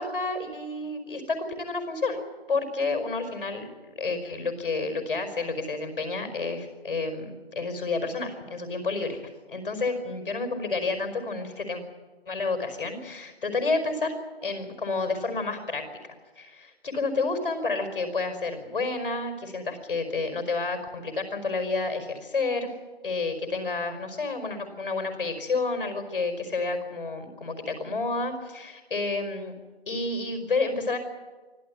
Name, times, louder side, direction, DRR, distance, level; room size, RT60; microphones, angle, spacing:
voice 1, 0.0-11.8 12.3-14.1 14.4-15.8 16.4-22.7 23.0-29.5 29.9-31.0, left 3 dB, 60° left, 8 dB, 5.1 m, -30 dB
25.0 x 15.5 x 9.7 m, 1.3 s
figure-of-eight pair, 160°, 31 cm